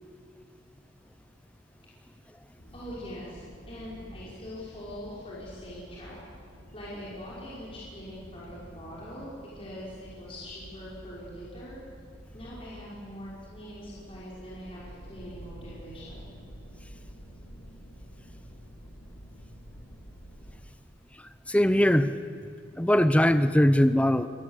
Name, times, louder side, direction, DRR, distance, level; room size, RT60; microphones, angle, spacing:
sound 1, 2.6-20.6, equal, 60° left, 5.0 m, -49 dB
voice 1, 2.7-6.2 6.7-11.8 12.3-16.3, equal, 30° left, -7 dB, 5.5 m, -43 dB
voice 2, 21.5-22.2 22.8-24.3, equal, 5° left, 12 dB, 0.6 m, -21 dB
25.0 x 19.5 x 8.2 m, 2.3 s
head